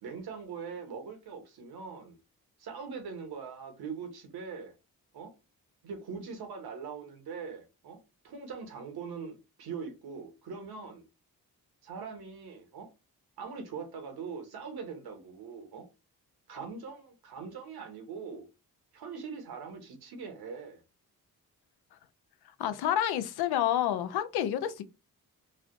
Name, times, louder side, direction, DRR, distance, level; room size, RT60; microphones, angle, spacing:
voice 1, 0.0-2.2 2.6-4.7 5.1-5.3 5.8-11.0 11.8-12.9 13.4-15.9 16.5-18.5 18.9-20.8, right 5 dB, 80° right, 1.1 m, -42 dB
voice 2, 22.6-24.8, left 11 dB, 85° left, 0.5 m, -29 dB
3.2 x 2.4 x 2.5 m
supercardioid pair, 50°, 37 cm